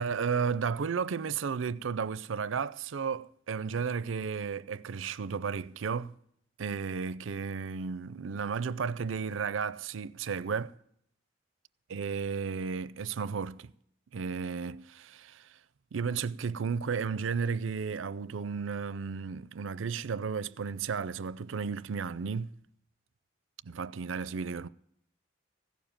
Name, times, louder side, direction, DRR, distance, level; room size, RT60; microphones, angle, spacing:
voice 1, 0.0-6.1 6.6-10.7 11.9-13.7 14.1-15.6 15.9-22.5 23.6-24.7, right 5 dB, 85° right, 0.5 m, -33 dB
16.0 x 7.1 x 8.9 m
head